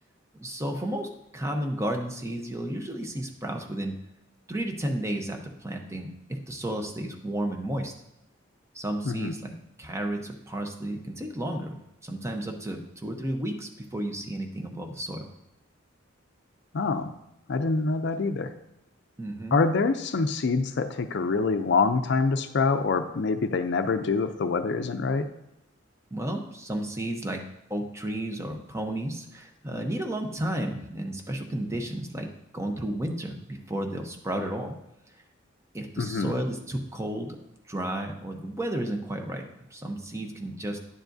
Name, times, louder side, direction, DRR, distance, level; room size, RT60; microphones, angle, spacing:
voice 1, 0.4-4.0 4.5-7.9 8.7-15.3 19.2-19.6 26.1-27.4 27.7-34.8 35.7-37.4 37.7-40.8, right 1 dB, 15° right, 3 dB, 0.7 m, -32 dB
voice 2, 16.7-17.1 17.5-18.5 19.5-25.3 36.0-36.3, left 4 dB, 60° left, 9 dB, 0.5 m, -25 dB
10.0 x 7.3 x 2.6 m, 0.85 s
head